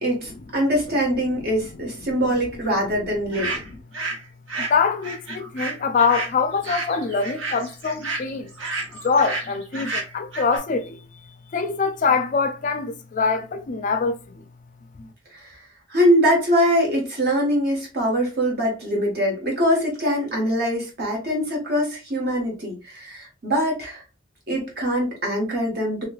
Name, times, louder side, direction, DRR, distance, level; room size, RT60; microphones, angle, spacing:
voice 1, 0.0-3.5 15.3-15.6 15.9-24.0 24.5-26.0, equal, 50° right, 1.4 m, -23 dB
sound 1, 3.3-4.2 4.5-10.6, right 3 dB, 75° right, 1.0 m, -31 dB
voice 2, 4.6-8.5 9.0-11.0 11.5-14.4 15.0-15.1, left 5 dB, 40° left, 0.3 m, -24 dB
3.1 x 3.0 x 2.3 m
head